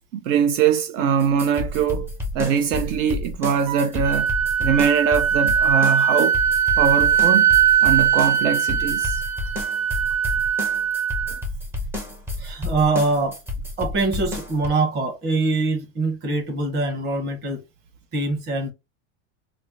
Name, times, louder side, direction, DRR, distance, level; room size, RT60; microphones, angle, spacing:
voice 1, 0.1-4.3 4.6-6.4 6.8-7.5 7.8-9.2, right 7 dB, 70° right, 0.8 m, -22 dB
sound 1, 1.2-14.7, left 2 dB, 5° right, 0.5 m, -30 dB
Wind instrument woodwind instrument, 3.7-11.4, right 8 dB, 50° right, 1.0 m, -20 dB
voice 2, 12.4-13.4 13.8-17.6 18.1-18.7, right 3 dB, 25° right, 1.2 m, -23 dB
4.2 x 2.0 x 2.9 m
supercardioid pair, 165°, 38 cm